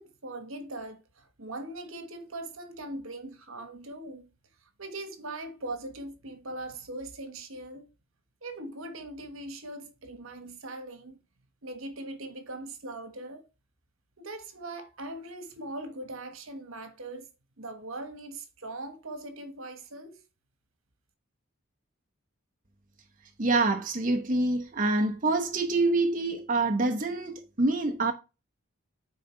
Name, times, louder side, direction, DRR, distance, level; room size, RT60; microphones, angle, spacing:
voice 1, 0.0-4.3 4.6-7.9 8.4-11.2 11.6-13.5 14.2-17.3 17.6-20.2, right 2 dB, 75° right, 1.4 m, -40 dB
voice 2, 23.4-28.1, right 2 dB, 35° right, 0.9 m, -26 dB
9.3 x 3.8 x 4.5 m
head